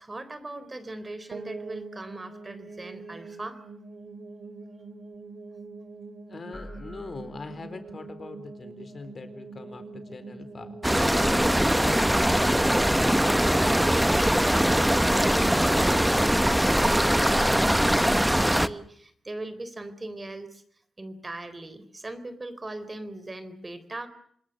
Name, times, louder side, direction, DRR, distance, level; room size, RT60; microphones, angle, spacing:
voice 1, 0.0-3.6 13.1-20.6 21.0-24.1, right 2 dB, 25° right, 12 dB, 3.9 m, -40 dB
sound 1, 1.3-14.2, right 3 dB, 55° right, 2.8 m, -44 dB
voice 2, 6.3-12.1, left 4 dB, 45° left, 11 dB, 4.1 m, -42 dB
sound 2, 6.5-8.1, left 1 dB, 15° left, 5.7 m, -47 dB
sound 3, 10.8-18.7, equal, 5° right, 1.0 m, -22 dB
27.0 x 21.0 x 6.7 m, 0.65 s
cardioid pair, 80°, 0 cm